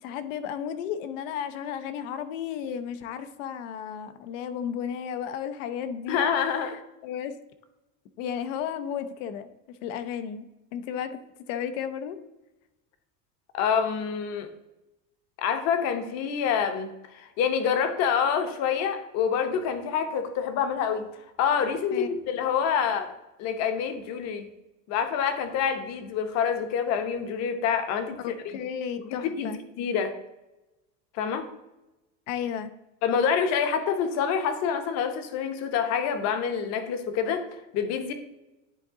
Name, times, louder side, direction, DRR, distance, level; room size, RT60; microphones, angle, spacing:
voice 1, 0.0-6.2 6.6-6.7 7.0-7.3 8.2-9.5 9.8-10.5 10.7-11.2 11.5-12.2 21.9-22.1 28.2-29.6 32.3-32.7, left 8 dB, 75° left, 10 dB, 0.7 m, -33 dB
voice 2, 6.1-6.7 13.5-14.5 15.4-21.1 21.4-23.1 23.4-24.5 24.9-28.6 29.0-30.1 31.1-31.5 33.0-37.4 37.7-38.1, left 7 dB, 45° left, 8 dB, 0.8 m, -27 dB
9.9 x 3.8 x 3.6 m, 1.0 s
cardioid pair, 165°, 38 cm